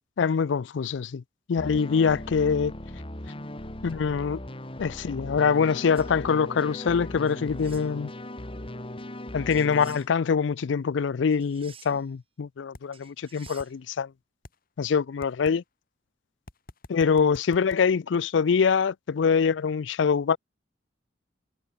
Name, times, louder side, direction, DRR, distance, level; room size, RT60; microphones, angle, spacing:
voice 1, 0.2-1.2 1.5-2.7 3.8-4.4 4.8-8.1 9.3-14.1 14.8-15.6 16.9-20.4, left 6 dB, 70° left, 0.4 m, -24 dB
sound 1, 1.6-10.1, left 1 dB, 30° left, 2.2 m, -38 dB
sound 2, 6.0-6.1 7.3-7.9 9.5-10.1 11.3-12.1 12.9-13.7, right 7 dB, 30° right, 6.5 m, -51 dB
sound 3, 12.7-12.8 13.5-13.7 14.4-14.6 15.2-15.6 16.5-17.8, left 2 dB, 50° left, 1.6 m, -44 dB
head